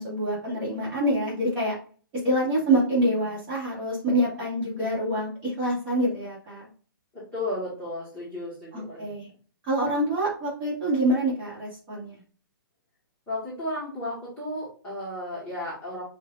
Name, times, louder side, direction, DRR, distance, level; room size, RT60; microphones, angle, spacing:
voice 1, 0.0-1.8 2.1-6.6 8.7-9.3 9.7-12.2, right 1 dB, 15° right, -7 dB, 1.9 m, -26 dB
voice 2, 7.1-9.1 13.3-16.0, left 1 dB, 10° left, -9 dB, 1.6 m, -34 dB
6.4 x 2.7 x 2.5 m, 0.41 s
hypercardioid pair, 170°, 12 cm